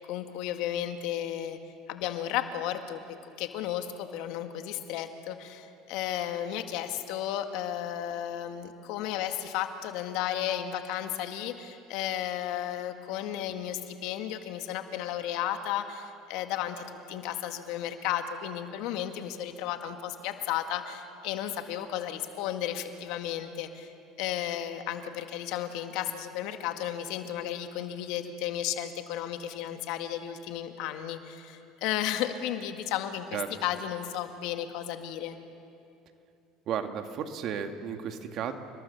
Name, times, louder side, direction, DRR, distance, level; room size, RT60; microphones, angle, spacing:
voice 1, 0.1-1.6 1.9-3.0 3.4-23.9 24.2-35.4, left 11 dB, 70° left, 6 dB, 1.9 m, -33 dB
voice 2, 36.7-38.5, right 8 dB, 55° right, 6 dB, 2.0 m, -33 dB
29.5 x 21.0 x 7.1 m, 2.6 s
supercardioid pair, 90°, 0 cm